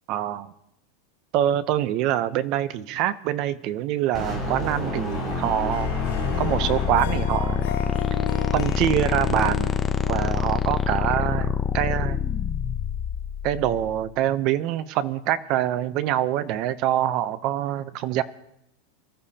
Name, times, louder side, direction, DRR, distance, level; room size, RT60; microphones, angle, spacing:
voice 1, 0.1-0.5 1.3-6.0 6.4-7.7 8.5-9.8 10.1-12.2 13.4-18.2, right 12 dB, 35° right, 14 dB, 0.7 m, -25 dB
sound 1, 4.1-7.4, left 1 dB, 15° right, 5.8 m, -30 dB
Harp, 5.1-11.4, left 10 dB, 70° left, 4.2 m, -37 dB
sound 2, 5.2-14.0, left 7 dB, 10° left, 0.6 m, -26 dB
26.0 x 14.0 x 2.9 m, 0.80 s
supercardioid pair, 175°, 0 cm